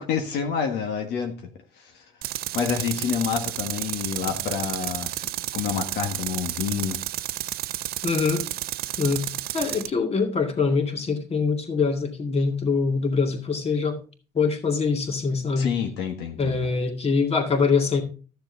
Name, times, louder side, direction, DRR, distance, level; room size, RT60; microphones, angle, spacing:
voice 1, 0.0-1.3 1.8-2.0 2.5-7.0 15.6-16.6, left 7 dB, 80° left, 1.6 m, -28 dB
Tools, 2.2-9.9, right 15 dB, 65° right, 0.4 m, -31 dB
voice 2, 8.0-8.4 9.0-9.3 9.5-14.0 14.3-15.7 16.4-18.0, left 4 dB, 35° left, 2.1 m, -24 dB
13.0 x 6.9 x 4.0 m
cardioid pair, 110°, 17 cm